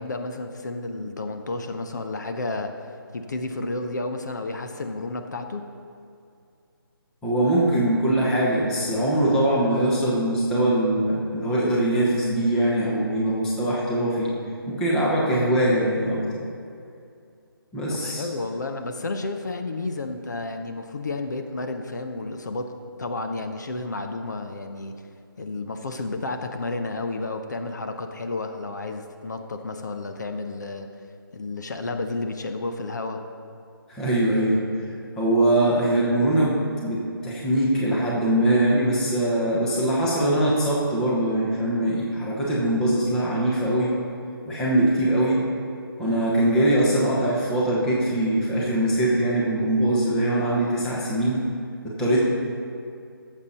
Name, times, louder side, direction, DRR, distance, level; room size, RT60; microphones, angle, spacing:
voice 1, 0.0-2.7 3.1-5.6 17.9-22.7 23.0-24.9 25.4-30.9 31.3-33.2, left 2 dB, 50° left, 6 dB, 0.8 m, -31 dB
voice 2, 7.2-14.3 14.7-16.4 17.7-18.2 33.9-34.6 35.2-43.9 44.4-45.4 46.0-51.4 51.8-52.2, right 1 dB, 5° left, -6 dB, 1.0 m, -22 dB
14.0 x 7.4 x 4.2 m, 2.4 s
figure-of-eight pair, 170°, 12 cm